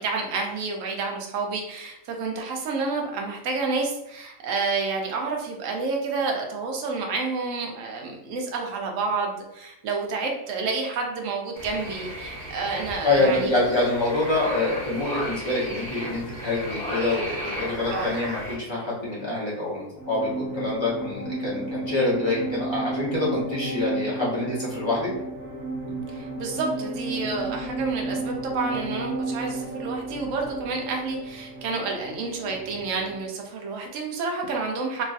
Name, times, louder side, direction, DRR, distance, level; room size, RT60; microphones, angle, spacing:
voice 1, 0.0-13.9 17.9-18.1 26.1-35.0, right 4 dB, 65° right, 1 dB, 0.9 m, -29 dB
sound 1, 11.6-18.6, equal, 35° right, 1.2 m, -34 dB
voice 2, 13.0-25.1, left 2 dB, 25° left, -7 dB, 0.6 m, -26 dB
sound 2, 20.0-33.3, right 2 dB, 55° left, 1.0 m, -33 dB
3.0 x 2.5 x 2.4 m, 0.83 s
omnidirectional pair, 1.6 m